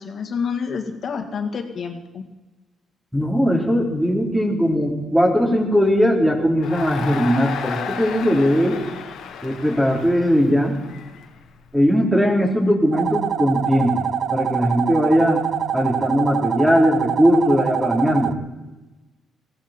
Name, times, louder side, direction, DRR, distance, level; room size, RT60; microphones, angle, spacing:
voice 1, 0.0-2.2, left 6 dB, 55° left, 5 dB, 2.1 m, -28 dB
voice 2, 3.1-8.8 9.4-10.8 11.7-14.0 14.3-15.5 15.7-18.3, equal, 5° right, -1 dB, 3.7 m, -19 dB
Crowd, 6.6-11.8, left 7 dB, 80° left, 1.6 m, -33 dB
sound 1, 12.9-18.3, right 9 dB, 60° right, 0.5 m, -25 dB
18.5 x 16.0 x 4.5 m, 1.1 s
cardioid pair, 90°, 0 cm